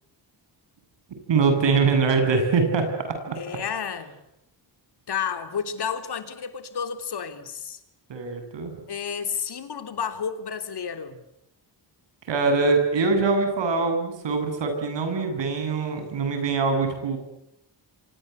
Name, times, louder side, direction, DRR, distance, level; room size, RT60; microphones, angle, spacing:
voice 1, 1.3-3.4 8.1-8.7 12.3-17.2, right 4 dB, 85° right, 6 dB, 8.0 m, -23 dB
voice 2, 3.4-4.2 5.1-7.8 8.9-11.2, left 7 dB, 65° left, 9 dB, 3.3 m, -31 dB
28.5 x 25.0 x 8.2 m, 0.79 s
wide cardioid pair, 130°, 42 cm